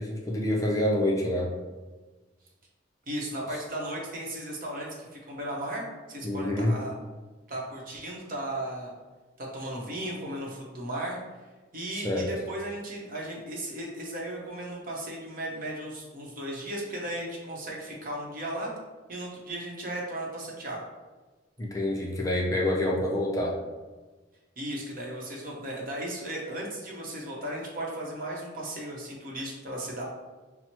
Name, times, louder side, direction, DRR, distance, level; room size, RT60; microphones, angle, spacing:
voice 1, 0.0-1.5 6.2-6.8 12.0-12.3 21.6-23.5, left 1 dB, 20° left, -2 dB, 0.4 m, -27 dB
voice 2, 3.1-6.9 7.5-8.9 9.4-11.2 11.7-18.7 19.1-20.8 24.6-30.0, right 1 dB, 45° right, -2 dB, 0.8 m, -36 dB
5.6 x 2.0 x 2.9 m, 1.3 s
head